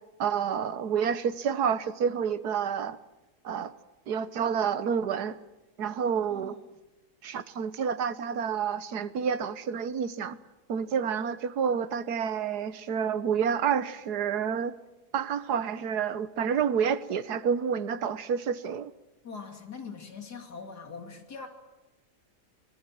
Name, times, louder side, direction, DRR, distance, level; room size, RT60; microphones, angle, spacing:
voice 1, 0.2-3.0 3.4-3.7 4.1-5.4 5.8-6.6 7.2-10.4 10.7-14.7 15.1-18.9, right 7 dB, 80° right, 14 dB, 1.6 m, -29 dB
voice 2, 6.3-6.6 19.2-21.5, left 5 dB, 90° left, 4 dB, 3.4 m, -42 dB
25.5 x 22.5 x 7.6 m, 1.1 s
omnidirectional pair, 1.7 m